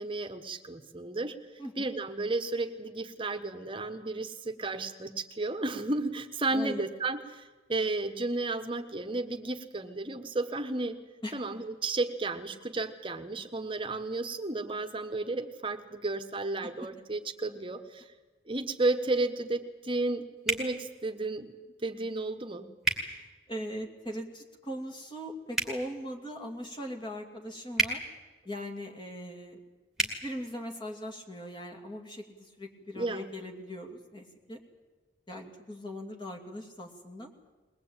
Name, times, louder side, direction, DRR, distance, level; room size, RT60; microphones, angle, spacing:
voice 1, 0.0-1.3 1.8-7.4 7.7-11.0 11.3-18.0 18.5-21.5 21.8-22.7 32.9-33.3, right 2 dB, 25° right, 7 dB, 1.2 m, -33 dB
voice 2, 1.6-1.9 6.5-6.9 11.2-11.4 16.6-16.7 23.1-28.0 28.4-29.6 30.0-34.6 35.3-37.3, equal, 25° left, 2 dB, 2.6 m, -40 dB
sound 1, 20.4-20.7 22.8-23.0 25.5-25.7 27.7-27.9 29.9-30.1, right 2 dB, 5° right, 2.3 m, -28 dB
21.5 x 20.0 x 8.9 m, 1.2 s
head